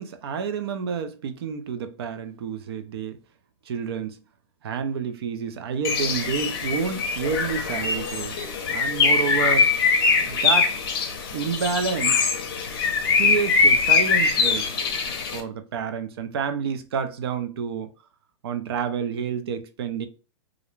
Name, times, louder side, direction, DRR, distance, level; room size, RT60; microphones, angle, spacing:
voice 1, 0.0-3.2 3.7-4.2 4.6-8.4 8.7-9.7 10.2-10.8 11.3-12.3 13.2-14.8 15.3-17.9 18.4-20.1, right 6 dB, 55° right, 0.4 m, -29 dB
Bird, 5.8-15.4, left 4 dB, 50° left, 0.6 m, -22 dB
2.4 x 2.0 x 3.0 m
supercardioid pair, 180°, 16 cm